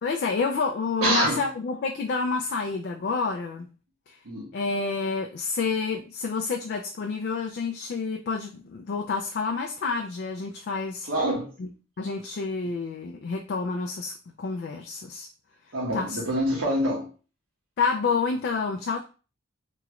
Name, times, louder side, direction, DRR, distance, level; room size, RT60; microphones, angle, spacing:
voice 1, 0.0-3.7 4.1-4.2 4.5-11.1 11.6-11.7 12.0-15.3 15.9-16.2 17.8-19.1, left 4 dB, 55° left, 0.3 m, -29 dB
voice 2, 1.0-1.4 4.2-4.5 11.1-11.5 15.7-17.1, right 1 dB, 90° right, 1.1 m, -25 dB
3.0 x 2.4 x 2.9 m
head